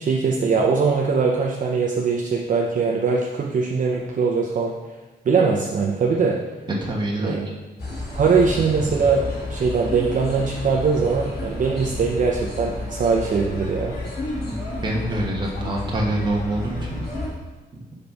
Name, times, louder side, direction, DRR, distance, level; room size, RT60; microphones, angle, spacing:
voice 1, 0.0-4.7 5.3-6.4 7.2-7.4 8.1-9.2 9.5-13.9, right 5 dB, 55° right, -2 dB, 0.6 m, -21 dB
voice 2, 6.8-7.4 14.4-14.5 14.8-17.0, right 1 dB, 30° right, -3 dB, 1.1 m, -25 dB
sound 1, 7.8-17.3, left 2 dB, 80° left, 1.8 m, -31 dB
5.2 x 4.0 x 5.8 m, 1.2 s
wide cardioid pair, 160°, 16 cm